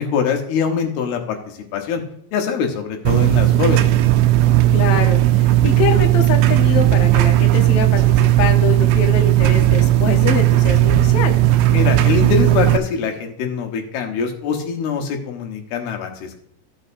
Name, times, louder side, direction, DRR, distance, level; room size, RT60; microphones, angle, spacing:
voice 1, 0.0-2.0 2.3-3.9 11.7-16.4, left 6 dB, 85° left, 3 dB, 3.3 m, -23 dB
sound 1, 3.1-12.8, right 14 dB, 90° right, 2.5 m, -15 dB
voice 2, 4.7-11.4, left 5 dB, 65° left, 3 dB, 1.5 m, -24 dB
14.5 x 6.4 x 2.7 m, 0.68 s
omnidirectional pair, 4.3 m